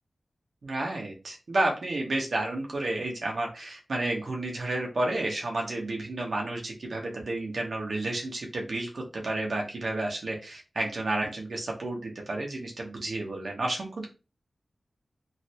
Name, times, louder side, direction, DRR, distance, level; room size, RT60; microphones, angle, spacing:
voice 1, 0.6-14.1, right 2 dB, 70° right, 0 dB, 0.8 m, -31 dB
3.2 x 2.5 x 2.8 m, 0.31 s
wide cardioid pair, 75°, 0 cm